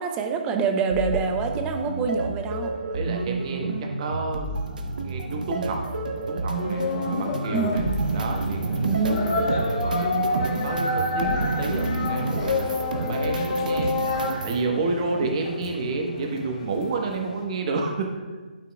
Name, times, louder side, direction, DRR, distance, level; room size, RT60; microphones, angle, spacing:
voice 1, 0.0-2.7 7.5-8.1 8.8-9.5, right 4 dB, 15° right, 5 dB, 0.6 m, -26 dB
sound 1, 0.9-14.6, right 3 dB, 60° right, 0.8 m, -29 dB
voice 2, 2.9-4.5 5.0-5.8 6.3-7.8 8.1-9.0 9.7-13.9 14.4-18.1, right 3 dB, 40° right, 2 dB, 1.1 m, -30 dB
sound 2, 6.5-17.4, left 3 dB, 35° left, 1.1 m, -29 dB
12.0 x 5.8 x 2.3 m, 1.4 s
figure-of-eight pair, 150°, 5 cm